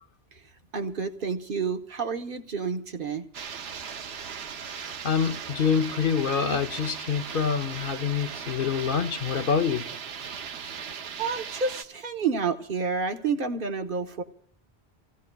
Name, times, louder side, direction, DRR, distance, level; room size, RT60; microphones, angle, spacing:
voice 1, 0.7-3.3 11.2-14.2, right 5 dB, 60° right, 1.1 m, -29 dB
sound 1, 3.3-11.8, right 7 dB, 90° right, 1.0 m, -38 dB
voice 2, 5.0-9.9, left 6 dB, 60° left, 0.9 m, -26 dB
27.5 x 16.0 x 2.2 m
omnidirectional pair, 1.0 m